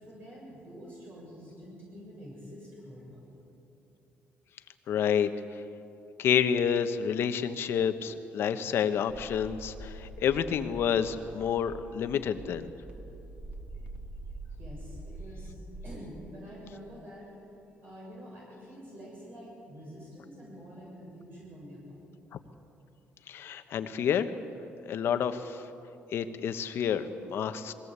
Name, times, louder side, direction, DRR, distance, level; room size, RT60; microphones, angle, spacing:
voice 1, 0.0-3.3 14.6-15.5 15.8-17.5 17.8-22.0, equal, 50° right, -4 dB, 7.3 m, -47 dB
voice 2, 4.9-5.3 6.2-12.7 22.3-22.4 23.3-24.3 24.9-25.6 26.1-27.7, left 8 dB, 65° left, 9 dB, 1.1 m, -29 dB
sound 1, 9.1-16.0, right 2 dB, 25° right, 2.9 m, -44 dB
21.5 x 17.5 x 8.2 m, 2.8 s
cardioid pair, 115°, 4 cm